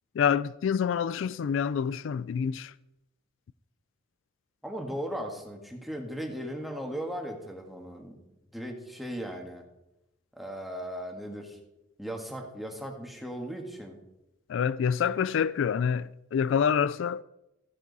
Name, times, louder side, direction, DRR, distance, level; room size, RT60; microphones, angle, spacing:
voice 1, 0.2-2.7 14.5-17.2, left 7 dB, 70° left, 0.3 m, -27 dB
voice 2, 4.6-8.2 8.5-9.6 10.3-11.6 12.0-14.0, equal, ahead, 1.7 m, -37 dB
15.0 x 9.1 x 4.1 m
head